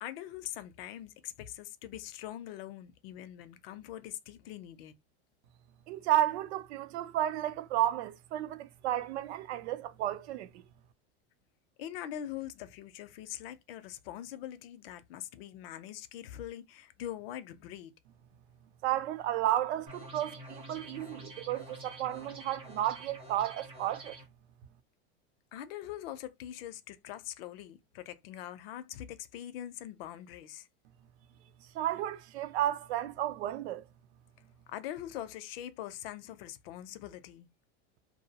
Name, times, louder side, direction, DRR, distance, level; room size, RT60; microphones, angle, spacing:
voice 1, 0.0-4.9 11.8-17.9 25.5-30.7 34.7-37.5, left 12 dB, 60° left, 0.5 m, -43 dB
voice 2, 5.9-10.5 18.8-24.2 31.7-33.8, right 13 dB, 75° right, 0.5 m, -32 dB
sound 1, 19.9-24.3, right 1 dB, 15° right, 0.5 m, -48 dB
2.6 x 2.0 x 2.8 m
supercardioid pair, 170°, 34 cm